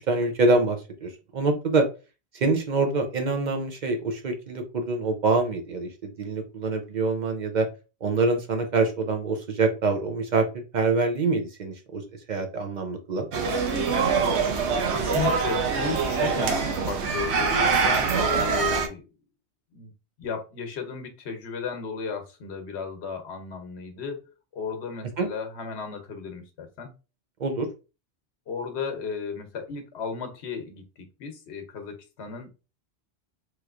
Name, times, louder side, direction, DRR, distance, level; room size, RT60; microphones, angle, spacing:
voice 1, 0.0-1.9 2.3-7.7 8.0-12.0 12.3-13.3 25.2-25.3 27.4-27.7, right 3 dB, 50° right, 5 dB, 0.6 m, -25 dB
sound 1, 13.3-18.9, right 5 dB, 85° right, 0.9 m, -24 dB
voice 2, 14.9-19.0 19.7-19.9 20.2-24.2 24.5-26.9 28.5-32.5, left 6 dB, 80° left, 5 dB, 1.1 m, -34 dB
3.1 x 3.0 x 2.4 m, 0.31 s
omnidirectional pair, 1.1 m